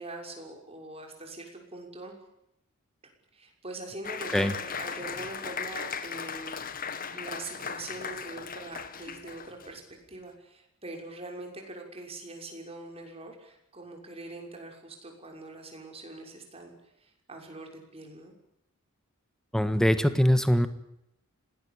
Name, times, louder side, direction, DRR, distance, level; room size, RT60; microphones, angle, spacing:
voice 1, 0.0-2.1 3.3-18.3, right 2 dB, 30° right, 2 dB, 6.2 m, -43 dB
Applause, 4.0-9.8, left 6 dB, 40° left, 1.8 m, -37 dB
voice 2, 19.5-20.7, equal, 5° left, 10 dB, 1.5 m, -22 dB
26.5 x 19.5 x 8.9 m, 0.82 s
head